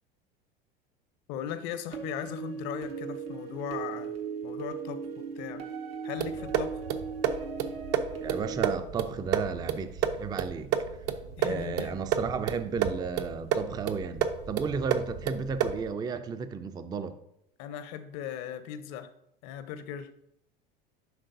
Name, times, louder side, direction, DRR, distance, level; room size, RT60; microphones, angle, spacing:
voice 1, 1.3-5.7 6.0-6.8 11.4-12.0 17.6-19.1 19.4-20.1, left 9 dB, 55° left, 11 dB, 0.7 m, -38 dB
sound 1, 1.9-8.7, right 6 dB, 75° right, 1.0 m, -37 dB
sound 2, 6.2-15.9, right 8 dB, 55° right, 0.6 m, -31 dB
voice 2, 8.2-10.7 11.4-17.2, right 5 dB, 15° right, 11 dB, 0.4 m, -33 dB
10.0 x 3.8 x 2.6 m, 0.77 s
hypercardioid pair, 75°, 29 cm